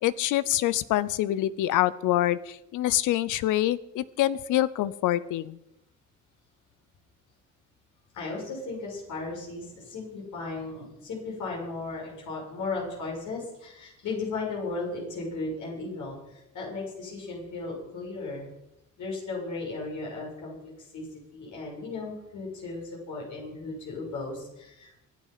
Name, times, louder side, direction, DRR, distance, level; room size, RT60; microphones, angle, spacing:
voice 1, 0.0-5.6, left 14 dB, 90° left, 17 dB, 0.7 m, -26 dB
voice 2, 8.1-18.4 19.0-24.9, left 3 dB, 75° left, -2 dB, 6.7 m, -36 dB
24.0 x 8.4 x 5.7 m, 0.88 s
cardioid pair, 90°, 30 cm